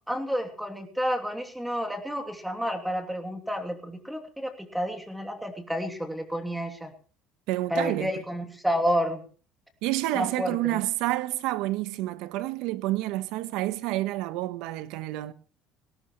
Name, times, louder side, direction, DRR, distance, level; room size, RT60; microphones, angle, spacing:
voice 1, 0.1-6.9 7.7-9.2 10.1-10.8, equal, 5° right, 2.9 m, -30 dB
voice 2, 7.5-8.1 9.8-15.3, right 16 dB, 75° right, 1.1 m, -29 dB
21.0 x 17.0 x 3.2 m
cardioid pair, 145°, 0 cm